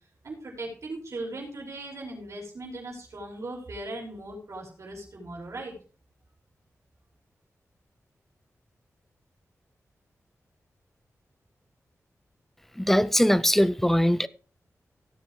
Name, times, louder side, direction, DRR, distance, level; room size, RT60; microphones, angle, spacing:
voice 1, 0.2-5.7, right 2 dB, 65° right, 5.5 m, -38 dB
voice 2, 12.8-14.3, equal, 5° left, 0.4 m, -21 dB
17.5 x 8.0 x 3.2 m
wide cardioid pair, 110°, 6 cm